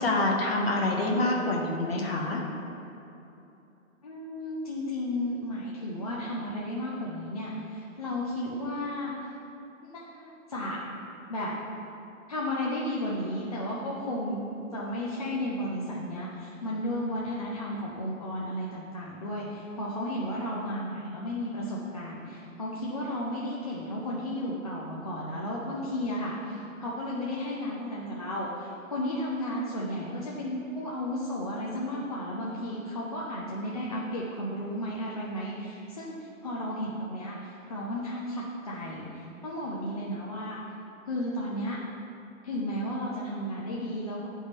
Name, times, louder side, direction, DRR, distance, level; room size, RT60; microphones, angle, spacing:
voice 1, 0.0-2.4, left 2 dB, 45° left, -1 dB, 1.2 m, -26 dB
voice 2, 4.0-9.1 9.8-10.8 11.3-11.5 12.3-14.4 14.7-40.6 41.1-41.8 42.4-44.3, left 1 dB, 30° left, -5 dB, 0.5 m, -33 dB
10.0 x 3.6 x 4.1 m, 2.9 s
figure-of-eight pair, 135°, 42 cm